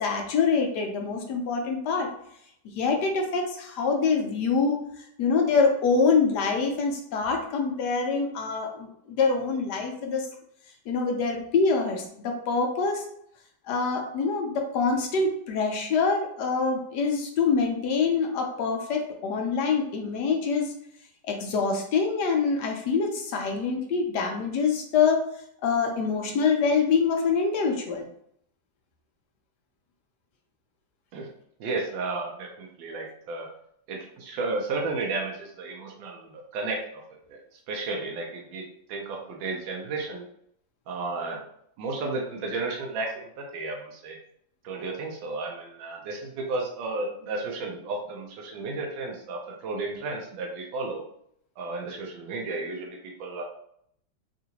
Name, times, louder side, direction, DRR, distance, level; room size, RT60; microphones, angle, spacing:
voice 1, 0.0-2.1 2.8-10.3 10.9-13.1 13.7-20.7 21.3-25.2 25.6-28.1, left 5 dB, 70° left, 3 dB, 1.1 m, -25 dB
voice 2, 31.6-33.5 33.9-37.0 37.3-37.4 37.7-38.6 38.9-40.2 40.9-41.4 41.8-44.2 44.6-51.0 51.6-53.4, right 3 dB, 80° right, 0 dB, 1.4 m, -33 dB
3.7 x 2.5 x 2.8 m, 0.69 s
omnidirectional pair, 2.1 m